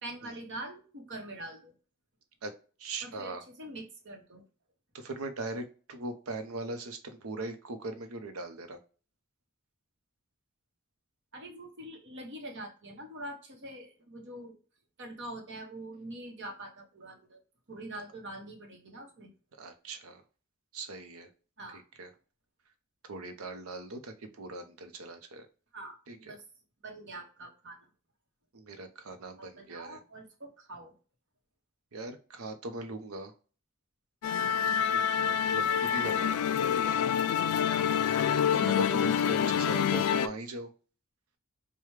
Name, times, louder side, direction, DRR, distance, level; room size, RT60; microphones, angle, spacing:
voice 1, 0.0-1.7 3.0-4.4 11.3-14.6 15.0-17.4 17.7-19.3 21.6-21.8 25.7-26.4 26.8-27.8 29.4-30.9 35.4-35.5 37.7-38.8, right 1 dB, 55° right, 2 dB, 1.1 m, -44 dB
voice 2, 2.8-3.4 4.9-8.8 19.6-20.2 20.7-21.3 21.7-22.1 23.1-25.5 26.1-26.4 28.5-30.0 31.9-33.3 34.8-36.9 38.4-40.7, right 2 dB, 85° right, 7 dB, 0.7 m, -40 dB
Musical instrument, 34.2-40.3, left 8 dB, 90° left, 0.3 m, -27 dB
4.8 x 2.2 x 3.2 m, 0.37 s
head